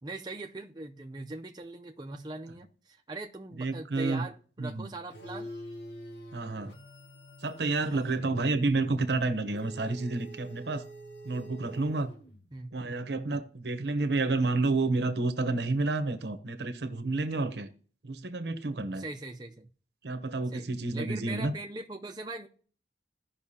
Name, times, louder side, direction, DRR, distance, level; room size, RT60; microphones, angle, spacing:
voice 1, 0.0-5.5 7.9-8.0 12.5-12.7 18.9-19.7 20.5-22.5, right 2 dB, 25° right, 0.5 m, -41 dB
voice 2, 3.6-4.2 4.6-4.9 6.3-6.7 7.4-10.8 11.2-12.1 12.7-17.7 18.0-19.0 20.0-21.5, right 3 dB, 70° right, 0.9 m, -30 dB
sound 1, 5.1-12.6, right 1 dB, 75° left, 1.9 m, -46 dB
15.5 x 5.7 x 2.8 m
head